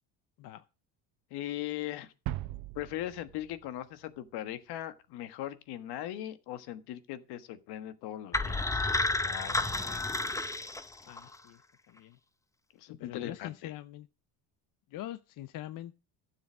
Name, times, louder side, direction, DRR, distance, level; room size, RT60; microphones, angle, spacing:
voice 1, 1.3-2.1 2.7-8.8 9.2-10.1 12.8-13.7, left 13 dB, 70° left, 1.4 m, -39 dB
sound 1, 2.3-4.3, right 15 dB, 75° right, 0.9 m, -40 dB
sound 2, 8.3-11.4, left 2 dB, 10° left, 0.8 m, -31 dB
voice 2, 11.0-11.6 11.9-12.2 13.0-14.1 14.9-16.0, left 14 dB, 55° left, 0.7 m, -43 dB
12.0 x 7.4 x 6.2 m
cardioid pair, 110°, 40 cm